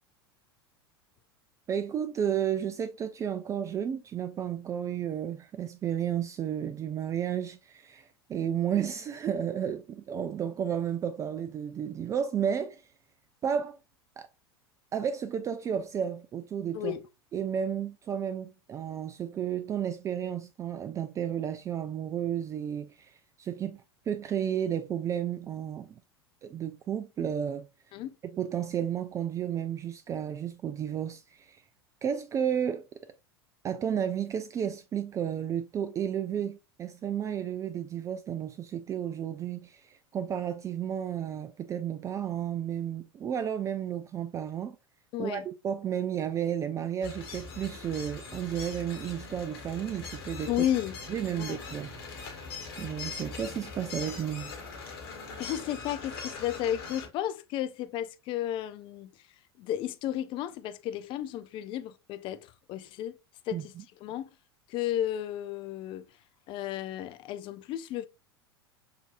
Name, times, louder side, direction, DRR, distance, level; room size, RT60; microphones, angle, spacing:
voice 1, 1.7-12.8 13.4-13.8 14.2-14.3 14.9-17.0 17.3-25.9 26.4-27.7 28.2-31.6 32.0-32.9 33.6-44.8 45.2-50.6 51.1-51.9 52.8-54.5 63.5-63.8, right 9 dB, 25° right, 0.3 m, -32 dB
voice 2, 45.1-45.4 50.5-51.0 51.4-51.6 55.4-59.1 59.6-63.2 63.5-63.7 64.0-64.3 64.7-66.1 66.5-68.1, left 12 dB, 40° left, 0.4 m, -33 dB
sound 1, 47.0-57.1, left 4 dB, 65° left, 1.6 m, -41 dB
6.5 x 2.6 x 2.5 m
figure-of-eight pair, 85°, 13 cm